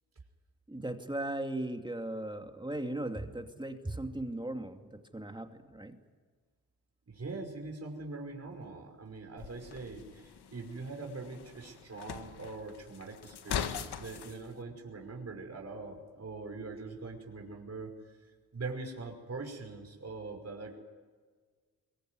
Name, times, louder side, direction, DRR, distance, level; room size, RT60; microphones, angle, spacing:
voice 1, 0.7-6.0, right 1 dB, 10° right, 5 dB, 2.5 m, -37 dB
voice 2, 7.1-17.9 18.5-20.8, right 3 dB, 40° right, 2 dB, 5.6 m, -42 dB
sound 1, 9.4-14.4, left 8 dB, 85° left, 1.7 m, -41 dB
22.5 x 22.5 x 9.6 m, 1.5 s
cardioid pair, 60°, 38 cm